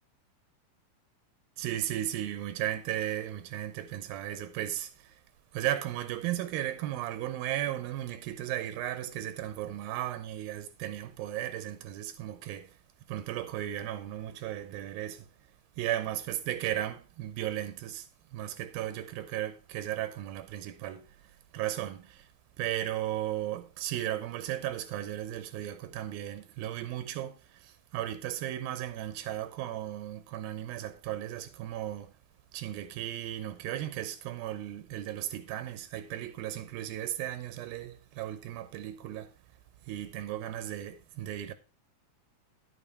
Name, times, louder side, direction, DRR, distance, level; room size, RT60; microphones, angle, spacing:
voice 1, 1.6-5.2 5.5-12.8 13.1-15.3 15.8-21.2 21.5-22.3 22.6-32.1 32.5-39.3 39.9-41.5, right 12 dB, 85° right, 2.5 m, -35 dB
9.9 x 8.9 x 3.3 m
omnidirectional pair, 4.2 m